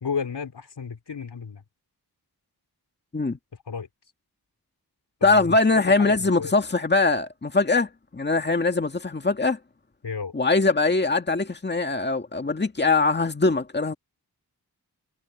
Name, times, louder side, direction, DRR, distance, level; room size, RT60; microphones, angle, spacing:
voice 1, 0.0-1.6 3.7-3.9 5.2-6.5 10.0-10.3, left 6 dB, 90° left, 3.2 m, -32 dB
voice 2, 5.2-9.6 10.3-13.9, left 3 dB, 25° left, 1.9 m, -22 dB
wide cardioid pair, 115°, 39 cm